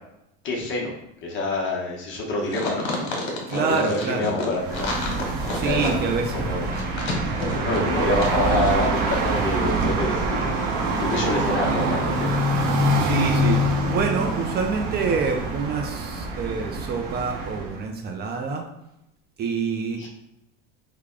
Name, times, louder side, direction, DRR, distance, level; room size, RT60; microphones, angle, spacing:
voice 1, 0.4-0.9 1.2-2.9 3.5-4.9 5.6-5.9 6.3-6.7 7.5-10.5 11.0-12.3 20.0-20.1, left 2 dB, 40° left, -1 dB, 0.9 m, -26 dB
sound 1, 2.5-8.4 8.6-8.7, left 3 dB, 80° left, 1.1 m, -31 dB
voice 2, 3.5-4.3 5.5-6.5 7.3-7.6 13.0-13.6 13.9-18.6 19.4-20.1, right 5 dB, 35° right, 3 dB, 0.4 m, -27 dB
sound 2, 4.5-17.8, right 1 dB, 55° right, 0.9 m, -25 dB
3.3 x 2.2 x 3.6 m, 0.85 s
supercardioid pair, 125°, 29 cm